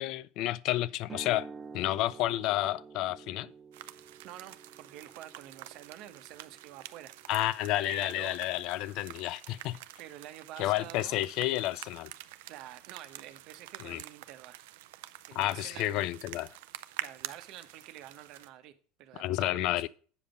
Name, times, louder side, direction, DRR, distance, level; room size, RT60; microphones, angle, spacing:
voice 1, 0.0-1.5 1.7-3.5 7.3-9.8 10.6-12.1 13.8-14.0 15.4-16.5 19.1-19.9, left 15 dB, 60° left, 0.4 m, -30 dB
sound 1, 1.0-9.1, right 5 dB, 25° right, 0.9 m, -50 dB
sound 2, 3.7-18.5, right 15 dB, 80° right, 0.5 m, -47 dB
voice 2, 4.2-7.3 7.9-8.4 10.0-11.2 12.5-14.6 15.3-16.1 17.0-18.7 19.0-19.9, right 12 dB, 60° right, 1.0 m, -48 dB
8.3 x 5.2 x 5.1 m
supercardioid pair, 105°, 0 cm